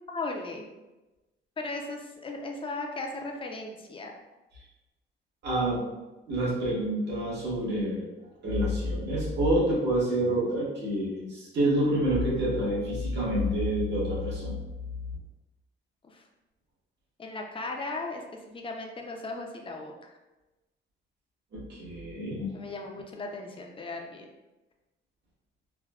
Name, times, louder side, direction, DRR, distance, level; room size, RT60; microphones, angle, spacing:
voice 1, 0.1-0.7 1.6-4.1 16.0-16.2 17.2-19.9 22.5-24.3, left 2 dB, 25° left, 2 dB, 0.5 m, -37 dB
voice 2, 5.4-5.8 6.3-8.1 8.4-14.6 15.0-15.1 21.5-22.7, right 1 dB, 60° right, -6 dB, 1.3 m, -28 dB
3.5 x 2.2 x 2.3 m, 1.1 s
cardioid pair, 90°, 20 cm